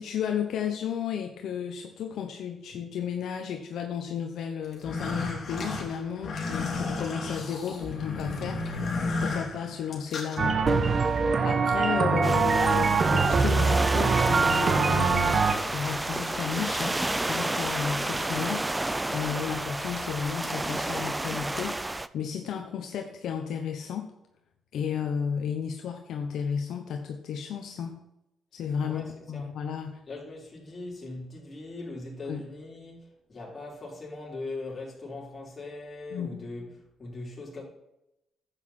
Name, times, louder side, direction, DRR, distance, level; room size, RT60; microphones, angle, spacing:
voice 1, 0.0-8.9 9.2-21.8 22.1-24.1 24.7-28.0 28.5-30.0 32.3-32.4 36.1-36.5, left 7 dB, 75° left, 0.9 m, -33 dB
sound 1, 4.7-10.4, left 3 dB, 50° left, 3.2 m, -33 dB
sound 2, 10.4-15.5, right 4 dB, 40° right, 1.0 m, -23 dB
sound 3, 12.2-22.1, right 2 dB, 15° right, 0.5 m, -31 dB
voice 2, 28.8-29.5 30.1-36.7 37.0-37.6, left 2 dB, 30° left, 4.3 m, -40 dB
10.5 x 8.2 x 4.3 m
cardioid pair, 90°, 0 cm